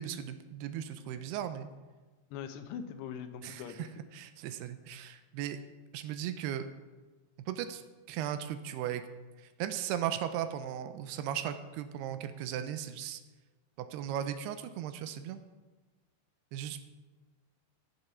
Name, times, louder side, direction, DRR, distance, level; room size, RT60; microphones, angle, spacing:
voice 1, 0.0-1.7 3.4-3.9 4.1-5.6 5.9-6.7 7.5-7.8 8.1-9.0 9.4-13.2 13.8-15.4 16.5-16.8, right 10 dB, 85° right, 10 dB, 2.6 m, -37 dB
voice 2, 2.3-3.9, left 8 dB, 80° left, 7 dB, 2.9 m, -42 dB
14.0 x 7.0 x 5.8 m, 1.3 s
omnidirectional pair, 4.9 m